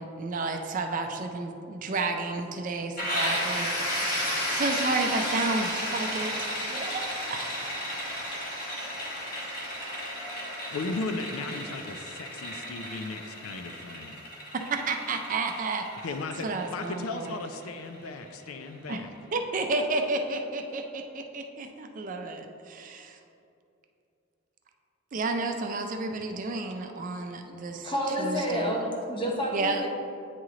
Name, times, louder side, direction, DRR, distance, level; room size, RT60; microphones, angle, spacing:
voice 1, 0.0-7.0 7.3-7.5 14.7-15.9 16.4-17.4 18.9-19.0 19.3-23.2 25.1-27.9 28.2-28.7 29.5-29.8, right 3 dB, 40° right, 5 dB, 0.4 m, -31 dB
sound 1, 3.0-18.6, equal, 45° left, 1.3 m, -33 dB
voice 2, 10.7-14.2 16.0-19.1, left 3 dB, 85° left, 7 dB, 0.4 m, -36 dB
voice 3, 27.8-29.9, equal, 25° left, -1 dB, 0.8 m, -29 dB
9.2 x 3.1 x 3.7 m, 2.7 s
head